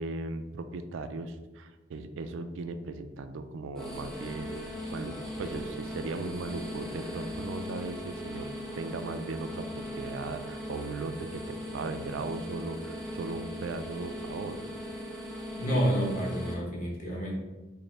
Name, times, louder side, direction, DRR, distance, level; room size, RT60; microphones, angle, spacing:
voice 1, 0.0-8.5 8.7-14.6, right 3 dB, 80° right, 10 dB, 0.3 m, -37 dB
sound 1, 3.7-16.5, equal, ahead, 0.8 m, -39 dB
voice 2, 15.5-17.4, equal, 40° left, -2 dB, 0.9 m, -29 dB
5.1 x 2.1 x 3.2 m, 1.2 s
head